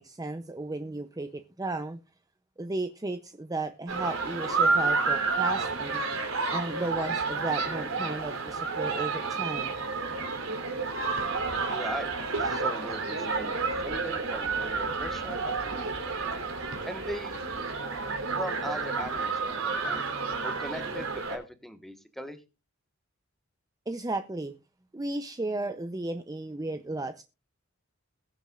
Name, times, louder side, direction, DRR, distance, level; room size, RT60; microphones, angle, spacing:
voice 1, 0.0-2.0 2.6-6.0 6.5-9.8 23.9-24.5 24.9-27.2, right 2 dB, 20° right, 0.5 m, -34 dB
sound 1, 3.9-21.4, right 4 dB, 85° right, 3.5 m, -30 dB
voice 2, 11.7-12.1 12.4-15.9 16.9-17.4 18.4-19.3 19.6-20.0 20.4-22.4, equal, ahead, 1.3 m, -39 dB
21.5 x 7.3 x 2.4 m
head